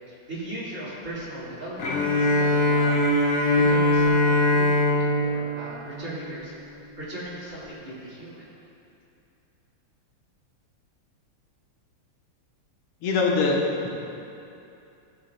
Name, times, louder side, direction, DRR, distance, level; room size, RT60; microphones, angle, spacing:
voice 1, 0.1-2.9 3.2-6.5 7.0-8.5, right 1 dB, 35° right, -9 dB, 2.3 m, -38 dB
Bowed string instrument, 1.8-6.7, left 1 dB, 70° left, 1.7 m, -22 dB
voice 2, 13.0-13.9, left 3 dB, 85° left, -1 dB, 1.9 m, -23 dB
15.0 x 7.2 x 2.2 m, 2.7 s
omnidirectional pair, 2.4 m